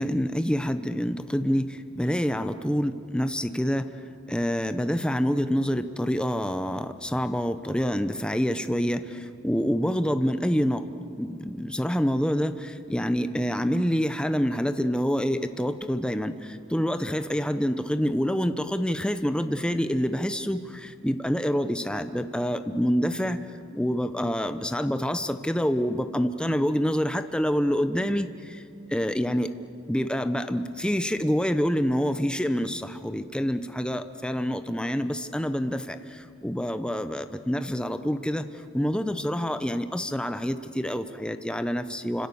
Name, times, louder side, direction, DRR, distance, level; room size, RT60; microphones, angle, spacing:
voice 1, 0.0-3.9 4.3-23.4 23.7-28.6 28.9-29.5 29.9-38.4 38.7-42.3, equal, 5° left, 9 dB, 0.8 m, -27 dB
29.0 x 26.0 x 7.1 m, 2.3 s
head